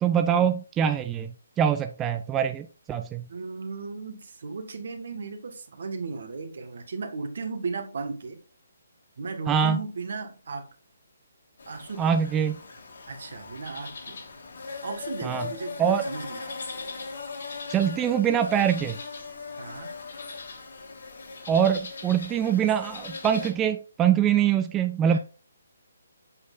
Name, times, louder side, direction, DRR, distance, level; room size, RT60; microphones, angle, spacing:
voice 1, 0.0-1.3 1.6-3.3 9.5-9.8 12.0-12.6 15.2-15.5 15.8-16.1 17.7-19.0 21.5-25.2, right 8 dB, 15° right, 0.4 m, -24 dB
voice 2, 3.3-8.4 9.2-10.7 11.7-12.1 13.1-14.2 14.8-16.5 19.6-19.9 25.1-25.2, right 4 dB, 65° right, 1.6 m, -36 dB
sound 1, 11.6-23.5, left 4 dB, 70° left, 2.6 m, -39 dB
7.7 x 6.3 x 2.6 m
hypercardioid pair, 150°, 0 cm